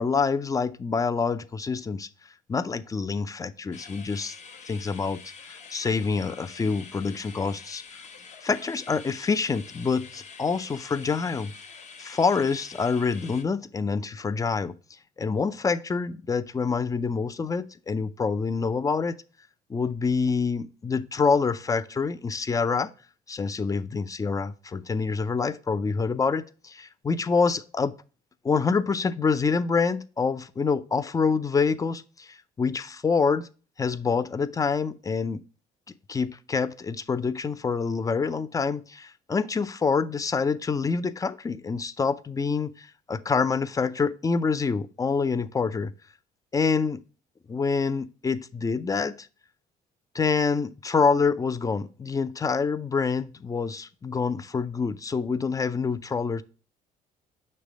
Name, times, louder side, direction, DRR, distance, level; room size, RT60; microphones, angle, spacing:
voice 1, 0.0-2.1 2.5-4.4 4.7-5.2 5.5-7.8 8.4-11.5 12.0-14.8 15.2-19.2 19.7-22.9 23.3-27.9 28.4-33.5 33.8-35.4 36.1-45.9 46.5-47.0 47.5-49.3 50.1-56.4, left 5 dB, 20° left, 0.4 m, -26 dB
sound 1, 3.7-13.4, left 5 dB, 45° left, 1.0 m, -46 dB
6.5 x 3.3 x 5.1 m
cardioid pair, 110°, 17 cm